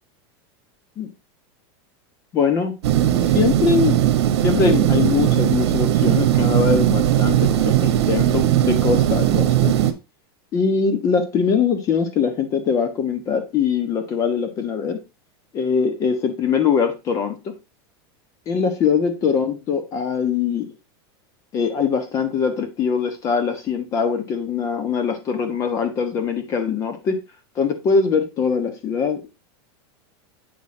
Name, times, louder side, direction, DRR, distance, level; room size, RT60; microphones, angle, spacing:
voice 1, 2.3-2.7 3.2-4.0 4.4-9.7 10.5-15.0 15.5-17.5 18.5-20.7 21.5-27.2 27.6-29.3, left 6 dB, 25° left, 1.2 m, -22 dB
sound 1, 2.8-9.9, right 11 dB, 80° right, 1.1 m, -18 dB
8.2 x 6.4 x 2.8 m
supercardioid pair, 170°, 14 cm